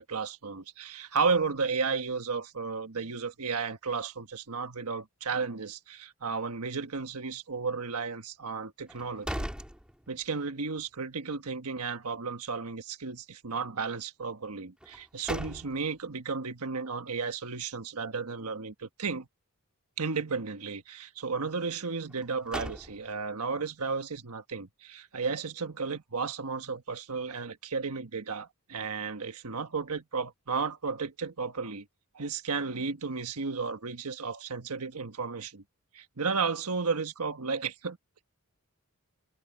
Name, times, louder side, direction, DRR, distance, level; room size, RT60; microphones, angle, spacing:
voice 1, 0.0-9.5 10.1-19.3 20.0-31.8 32.1-35.6 35.9-38.0, right 4 dB, 85° right, 1.3 m, -33 dB
sound 1, 8.9-10.5 10.9-11.0 14.8-16.1 22.1-23.4, equal, 5° right, 2.3 m, -39 dB
head